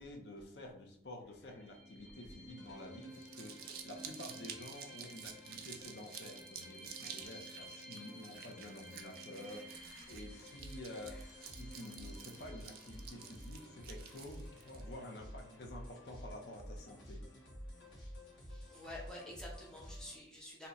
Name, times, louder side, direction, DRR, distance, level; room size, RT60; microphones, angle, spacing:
voice 1, 0.0-9.7 10.1-11.2 11.5-17.2, left 1 dB, 65° left, 1 dB, 0.6 m, -50 dB
sound 1, 1.4-14.7, right 1 dB, 40° left, 1.1 m, -55 dB
sound 2, 2.6-20.2, equal, 85° left, 1.0 m, -53 dB
Crumpling crinkling, 3.0-14.8, right 8 dB, 50° right, 0.4 m, -51 dB
voice 2, 18.4-20.7, left 1 dB, 5° left, -3 dB, 0.7 m, -50 dB
2.8 x 2.1 x 3.8 m, 0.65 s
head